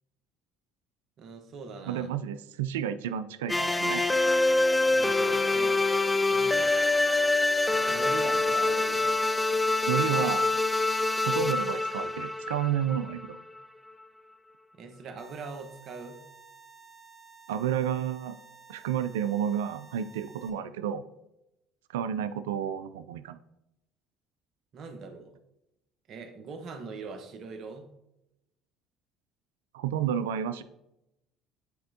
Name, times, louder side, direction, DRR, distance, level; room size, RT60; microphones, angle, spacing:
voice 1, 1.2-2.1 4.9-5.8 6.3-6.8 7.9-9.0 14.7-16.2 24.7-25.3 26.1-27.9, right 4 dB, 55° right, 6 dB, 1.0 m, -42 dB
voice 2, 1.9-4.1 9.9-10.5 11.2-13.4 17.5-18.4 18.7-21.1 21.9-23.4 29.7-30.6, right 9 dB, 85° right, 13 dB, 0.3 m, -31 dB
sound 1, 3.5-13.4, left 2 dB, 15° left, 0.4 m, -25 dB
sound 2, 15.2-20.5, right 5 dB, 10° right, 1.7 m, -53 dB
9.1 x 4.3 x 2.8 m, 0.88 s
hypercardioid pair, 65°, 0 cm